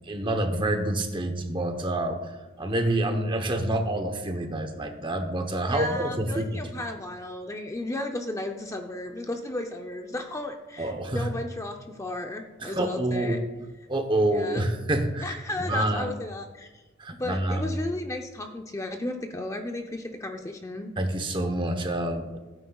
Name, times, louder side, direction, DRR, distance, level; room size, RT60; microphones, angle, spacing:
voice 1, 0.1-2.2 2.6-6.5 10.8-11.3 12.6-13.4 13.9-15.4 15.6-16.1 17.0-17.6 21.0-22.4, right 1 dB, 25° right, 6 dB, 0.9 m, -27 dB
voice 2, 5.7-13.4 14.3-14.7 15.2-16.8 17.2-20.9, left 1 dB, 15° left, 4 dB, 0.6 m, -34 dB
16.0 x 9.1 x 2.4 m, 1.2 s
head